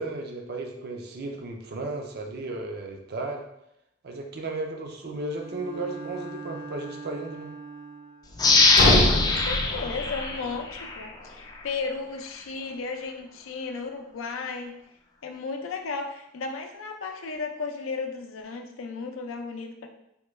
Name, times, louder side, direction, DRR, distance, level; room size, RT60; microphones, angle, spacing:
voice 1, 0.0-3.5 4.0-7.5, right 2 dB, 55° right, 2 dB, 0.5 m, -34 dB
Bowed string instrument, 5.3-8.4, right 4 dB, 80° right, 1.4 m, -41 dB
sound 1, 8.4-11.1 11.5-11.6, left 3 dB, 20° left, 0.3 m, -22 dB
sound 2, 8.7-10.6, left 1 dB, 50° left, 0.7 m, -25 dB
voice 2, 9.2-14.8 15.2-19.9, left 4 dB, 90° left, 4 dB, 0.5 m, -34 dB
3.7 x 2.2 x 3.1 m, 0.81 s
head